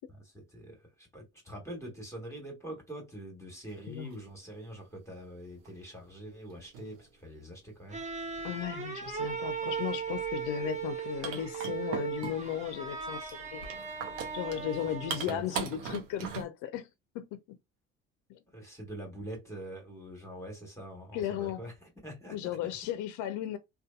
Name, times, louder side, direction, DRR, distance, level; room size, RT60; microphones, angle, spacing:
voice 1, 0.1-8.0 14.8-15.6 18.5-22.6, right 1 dB, 5° left, 1.2 m, -45 dB
sound 1, 4.1-4.2 5.6-5.7 6.5-7.0 8.2-8.5 10.3-10.4 10.7-10.8 11.2-12.6 13.3-16.4, right 6 dB, 80° right, 0.8 m, -39 dB
sound 2, 7.9-15.4, right 6 dB, 20° right, 0.7 m, -37 dB
voice 2, 8.4-13.6 14.3-16.9 17.1-17.6 18.3-18.4 21.1-21.6 22.3-23.6, left 11 dB, 55° left, 0.5 m, -36 dB
2.6 x 2.4 x 2.3 m
hypercardioid pair, 65°, 38 cm